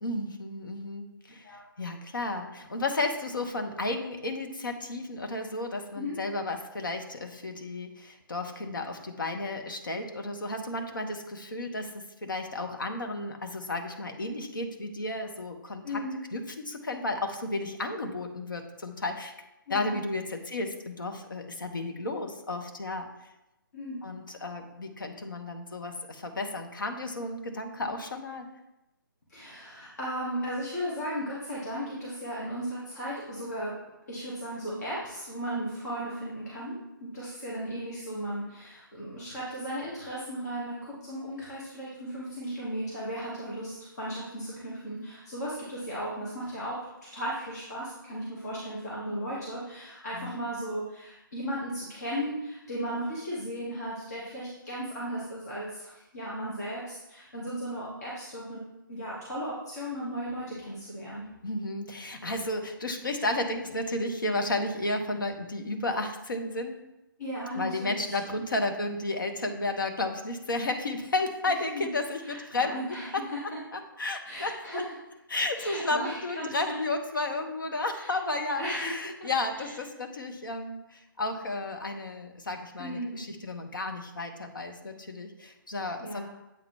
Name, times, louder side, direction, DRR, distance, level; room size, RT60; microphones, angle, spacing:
voice 1, 0.0-11.9 12.2-16.0 16.3-19.3 19.7-23.1 24.0-28.5 50.1-50.5 61.4-66.8 67.5-73.0 73.7-74.8 75.3-86.3, left 2 dB, 65° left, 4 dB, 1.0 m, -33 dB
voice 2, 15.8-16.2 19.7-20.0 23.7-24.1 29.3-33.8 34.1-58.6 58.9-61.2 67.2-68.2 71.7-71.9 72.2-73.4 74.2-74.9 75.6-76.7 77.9-78.1 78.6-78.9 79.6-79.7 82.8-83.3 86.0-86.3, equal, 45° left, -7 dB, 1.8 m, -36 dB
8.1 x 4.0 x 3.2 m, 0.95 s
figure-of-eight pair, 140°, 12 cm